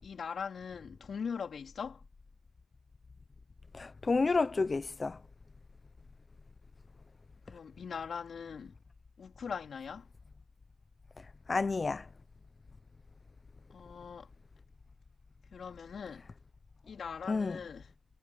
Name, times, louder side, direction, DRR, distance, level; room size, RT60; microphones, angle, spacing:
voice 1, 0.0-2.0 7.5-8.8 9.2-10.1 13.7-14.3 15.5-16.3 16.8-18.0, left 6 dB, 50° left, 4.0 m, -41 dB
voice 2, 3.8-5.2 11.5-12.0 17.3-17.6, left 4 dB, 30° left, 0.8 m, -30 dB
cardioid pair, 85°, 0 cm